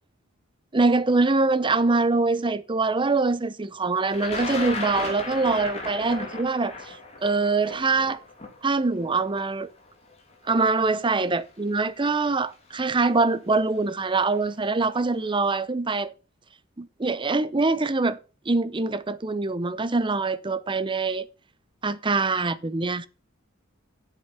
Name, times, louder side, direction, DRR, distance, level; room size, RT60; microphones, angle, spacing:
voice 1, 0.7-6.9 7.2-8.2 8.6-9.7 10.5-16.1 16.8-18.2 18.5-21.2 21.8-23.1, right 3 dB, 25° right, 0.7 m, -24 dB
Thunder, 4.1-10.1 11.1-11.2 12.3-12.5 12.8-13.3, left 3 dB, 30° left, 2.9 m, -35 dB
8.3 x 8.0 x 5.5 m
head